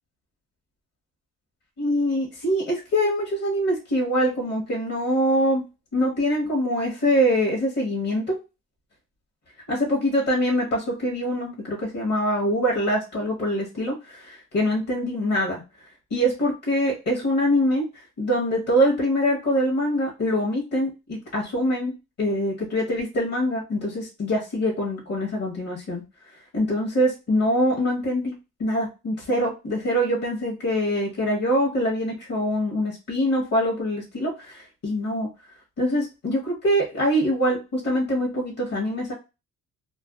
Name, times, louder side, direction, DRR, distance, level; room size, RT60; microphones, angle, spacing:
voice 1, 1.8-5.6 5.9-8.4 9.7-15.6 16.1-17.9 18.2-26.0 26.5-28.3 28.6-35.3 35.8-39.1, equal, 60° left, -2 dB, 1.0 m, -24 dB
2.5 x 2.2 x 2.3 m, 0.28 s
cardioid pair, 90°, 30 cm